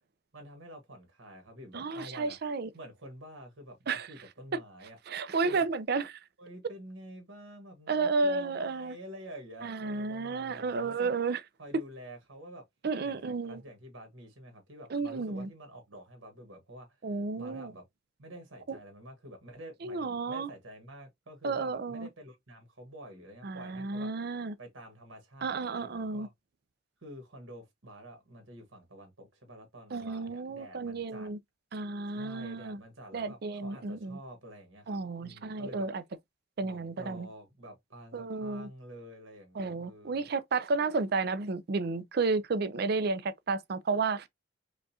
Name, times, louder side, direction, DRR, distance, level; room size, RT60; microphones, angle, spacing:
voice 1, 0.3-2.4 2.7-5.0 5.4-5.7 6.4-11.1 11.6-12.6 13.0-17.8 18.2-24.1 24.6-26.3 27.0-31.3 32.1-35.9 36.6-40.3, right 1 dB, 75° right, 1.5 m, -48 dB
voice 2, 1.7-2.7 3.9-4.1 5.1-6.0 7.9-8.9 9.6-11.4 12.8-13.6 14.9-15.5 17.0-17.7 18.7-18.8 19.8-20.5 21.4-22.1 23.4-24.5 25.4-26.3 29.9-31.4 31.7-32.8 33.1-34.2 34.9-36.0 36.6-37.3 38.1-38.7 39.6-44.3, right 4 dB, 50° right, 0.4 m, -32 dB
5.1 x 2.3 x 2.8 m
head